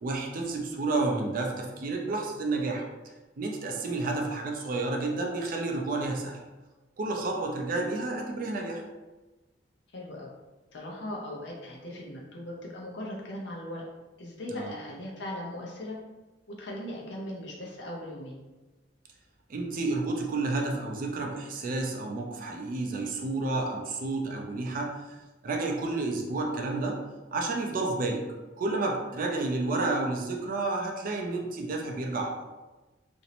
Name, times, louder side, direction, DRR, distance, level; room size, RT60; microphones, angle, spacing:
voice 1, 0.0-2.9 3.4-6.4 7.0-8.8 14.5-14.7 19.5-25.2 25.4-27.0 27.3-28.3 28.6-32.3, right 2 dB, 50° right, 1 dB, 0.4 m, -30 dB
voice 2, 9.9-10.3 10.7-13.9 14.2-16.0 16.6-18.4, left 1 dB, 70° left, -2 dB, 0.6 m, -39 dB
2.5 x 2.0 x 2.8 m, 1.2 s
head